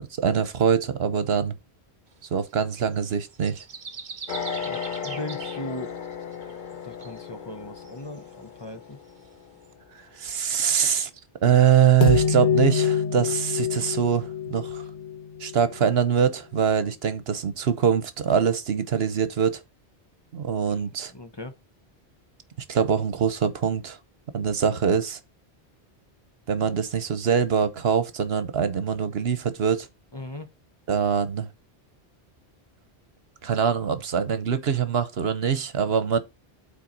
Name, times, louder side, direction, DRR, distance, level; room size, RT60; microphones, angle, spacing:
voice 1, 0.0-1.5 2.3-3.6 10.1-11.1 11.4-14.8 15.4-19.6 20.3-21.1 22.7-24.0 24.3-25.2 26.5-29.9 30.9-31.5 33.4-36.2, right 7 dB, 70° right, 1.1 m, -23 dB
sound 1, 2.2-6.7 7.0-7.2 7.8-8.3 8.6-8.7 9.2-9.3 9.6-9.7, right 5 dB, 50° right, 1.0 m, -41 dB
sound 2, 4.3-8.6 12.0-15.9, left 7 dB, 55° left, 0.9 m, -28 dB
voice 2, 4.6-5.9 6.8-9.0 20.8-21.5 30.1-30.5, left 1 dB, 25° left, 0.8 m, -38 dB
8.9 x 4.3 x 4.0 m
omnidirectional pair, 1.1 m